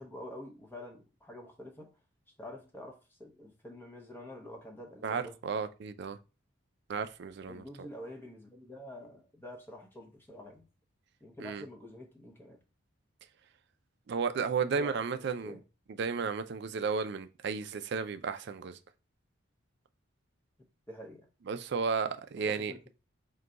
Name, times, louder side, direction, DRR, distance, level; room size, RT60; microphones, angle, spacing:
voice 1, 0.0-1.9 2.4-5.4 7.5-10.7 11.2-12.6 14.6-15.6 20.9-21.3 22.4-22.8, left 1 dB, 10° left, 0.7 m, -47 dB
voice 2, 5.0-6.2 6.9-7.9 11.4-11.7 14.1-15.6 15.9-18.8 21.5-22.7, right 5 dB, 55° right, 0.3 m, -33 dB
4.6 x 2.2 x 3.8 m
head